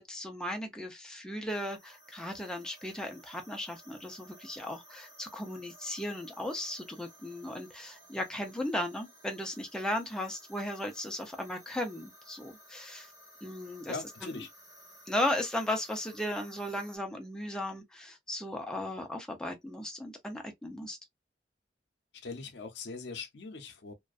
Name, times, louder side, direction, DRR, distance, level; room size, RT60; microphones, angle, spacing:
voice 1, 0.0-13.1 13.4-14.4 15.1-21.0, left 1 dB, 5° left, 0.4 m, -36 dB
sound 1, 1.5-17.0, right 1 dB, 20° right, 1.1 m, -56 dB
voice 2, 13.9-14.5 22.1-23.9, left 4 dB, 75° left, 0.5 m, -41 dB
2.5 x 2.1 x 2.3 m
head